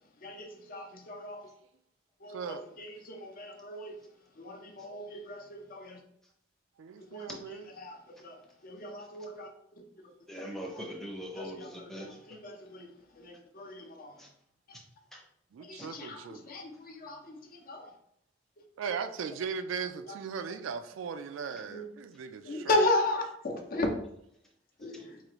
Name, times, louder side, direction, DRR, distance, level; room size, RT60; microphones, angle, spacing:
voice 1, 0.2-1.5 2.2-4.0 4.4-6.0 7.0-9.8 11.3-12.9 13.1-14.3 15.6-17.9 21.7-21.8 22.4-23.9 24.8-25.2, left 2 dB, 45° left, 0.6 m, -35 dB
voice 2, 2.3-2.6 6.8-7.7 15.5-16.5 18.8-22.8, right 6 dB, 80° right, 0.3 m, -38 dB
voice 3, 10.3-12.1 14.2-14.3 15.1-15.2 24.8-25.1, equal, ahead, 0.7 m, -41 dB
4.7 x 2.4 x 3.0 m
head